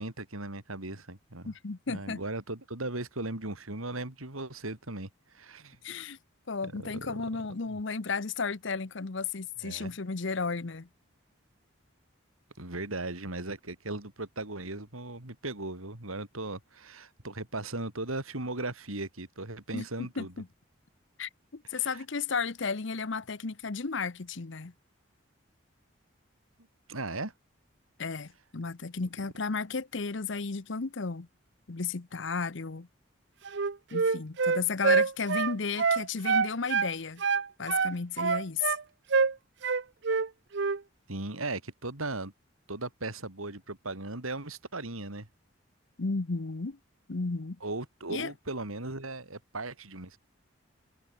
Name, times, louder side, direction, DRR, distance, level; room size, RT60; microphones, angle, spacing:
voice 1, 0.0-1.5 1.9-5.8 6.6-7.2 7.7-7.8 9.6-9.9 12.6-20.3 21.7-22.0 26.9-27.3 41.1-42.3 42.7-45.3 47.6-50.2, right 2 dB, 90° right, 4.2 m, -37 dB
voice 2, 1.5-2.2 5.8-6.2 6.5-10.9 19.7-20.5 21.2-24.7 28.0-31.3 31.7-32.9 33.9-37.2 37.6-38.8 46.0-46.8 47.1-47.6 48.1-48.3, left 4 dB, 60° left, 0.8 m, -33 dB
Wind instrument woodwind instrument, 33.4-36.9 37.2-38.8 39.1-39.3 39.6-40.3 40.5-40.8, right 5 dB, 55° right, 0.6 m, -26 dB
head